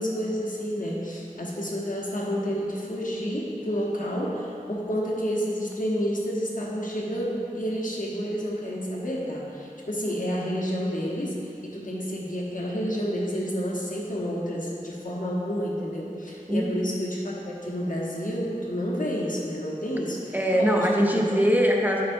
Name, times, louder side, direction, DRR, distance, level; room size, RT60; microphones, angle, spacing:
voice 1, 0.0-11.4 11.6-20.9 21.1-21.2, equal, 70° left, -4 dB, 1.0 m, -30 dB
voice 2, 20.3-22.0, equal, 10° right, -1 dB, 0.6 m, -22 dB
8.1 x 5.6 x 2.6 m, 2.5 s
wide cardioid pair, 55°, 14 cm